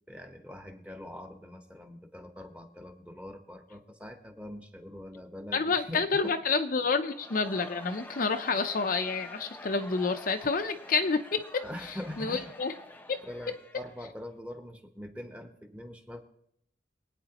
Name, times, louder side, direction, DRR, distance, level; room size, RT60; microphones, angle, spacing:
voice 1, 0.1-6.3 6.8-6.9 11.6-12.5 13.2-16.2, left 1 dB, 5° right, 5 dB, 1.0 m, -43 dB
voice 2, 5.5-11.6 12.2-12.7 13.1-13.2, left 4 dB, 45° left, 7 dB, 0.6 m, -29 dB
Crowd, 7.1-14.3, left 2 dB, 10° left, 0.6 m, -47 dB
23.5 x 9.1 x 3.0 m, 0.75 s
head